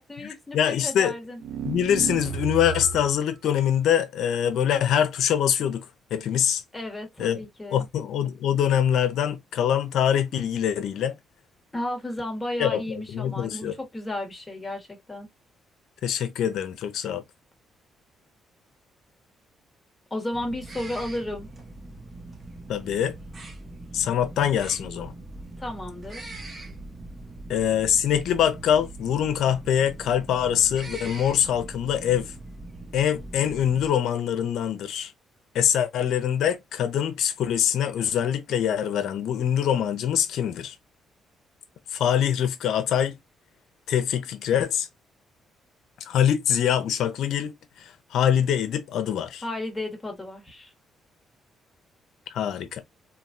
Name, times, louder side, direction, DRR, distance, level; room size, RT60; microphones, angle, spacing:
voice 1, 0.0-1.4 6.7-7.9 11.7-15.3 20.1-21.5 25.6-26.3 49.4-50.7, left 1 dB, 20° left, 1.3 m, -33 dB
voice 2, 0.5-1.1 1.6-5.9 6.1-6.6 7.2-7.4 7.7-11.2 12.6-13.7 16.0-17.2 22.7-23.1 23.9-25.1 27.5-32.3 32.9-35.1 35.5-40.7 41.9-43.2 43.9-44.9 46.1-47.5 47.8-49.4 52.3-52.8, left 9 dB, 75° left, 0.7 m, -24 dB
sound 1, 1.4-3.2, right 6 dB, 85° right, 0.5 m, -32 dB
sound 2, 20.3-33.9, right 2 dB, 35° right, 1.0 m, -41 dB
3.2 x 2.3 x 2.6 m
cardioid pair, 90°, 0 cm